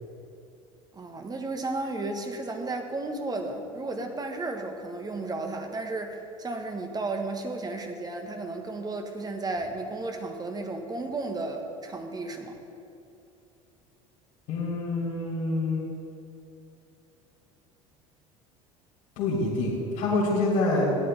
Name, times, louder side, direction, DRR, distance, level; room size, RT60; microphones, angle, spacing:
voice 1, 0.9-12.6, right 2 dB, 20° right, 4 dB, 1.5 m, -33 dB
voice 2, 14.5-15.8 19.2-20.9, left 2 dB, 50° left, -6 dB, 3.3 m, -26 dB
16.5 x 11.0 x 3.4 m, 2.7 s
hypercardioid pair, 70°, 18 cm